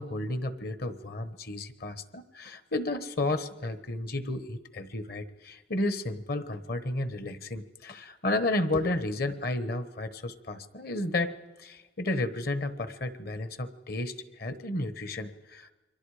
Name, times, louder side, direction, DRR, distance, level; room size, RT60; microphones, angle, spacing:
voice 1, 0.0-11.3 11.6-15.7, left 2 dB, 50° left, 12 dB, 1.2 m, -32 dB
29.5 x 23.5 x 5.0 m, 1.2 s
head